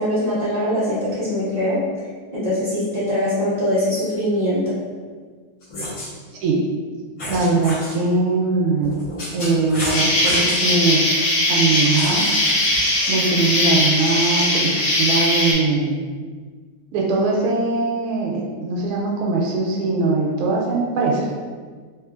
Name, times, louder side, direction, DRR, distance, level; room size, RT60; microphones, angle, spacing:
voice 1, 0.0-1.8 2.3-4.7, equal, 20° left, -13 dB, 1.3 m, -22 dB
sound 1, 5.6-6.1 7.2-8.0 8.8-10.7 12.0-12.8, equal, 50° left, 1.3 m, -30 dB
voice 2, 7.3-8.9 9.3-11.0 11.5-12.2 13.1-14.7 15.0-16.0 16.9-21.3, right 3 dB, 80° right, -2 dB, 1.4 m, -21 dB
Insect, 9.9-15.5, left 1 dB, 75° left, 1.6 m, -20 dB
3.7 x 3.0 x 2.4 m, 1.5 s
omnidirectional pair, 2.3 m